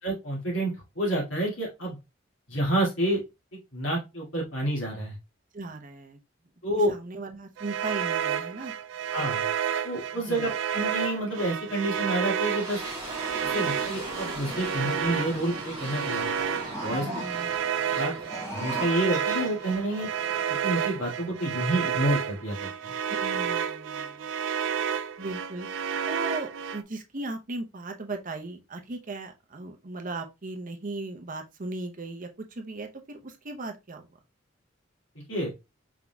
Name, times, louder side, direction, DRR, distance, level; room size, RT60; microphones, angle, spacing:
voice 1, 0.0-2.0 2.5-3.2 3.7-5.2 6.6-6.9 9.1-9.4 9.8-12.8 13.4-16.3 16.6-17.2 18.0-18.1 18.5-20.1 20.5-22.9 35.3-35.5, right 1 dB, 80° left, 2.2 m, -29 dB
voice 2, 5.5-6.2 6.9-8.7 10.1-10.5 17.0-17.5 23.1-24.3 25.2-25.7 26.1-34.1, right 2 dB, 45° right, 0.8 m, -37 dB
sound 1, 7.6-26.8, right 8 dB, 70° right, 0.3 m, -31 dB
sound 2, 12.0-22.9, right 1 dB, 15° right, 2.3 m, -41 dB
sound 3, 16.4-17.6 18.1-19.8, right 1 dB, 15° left, 1.7 m, -37 dB
4.7 x 3.9 x 2.2 m
head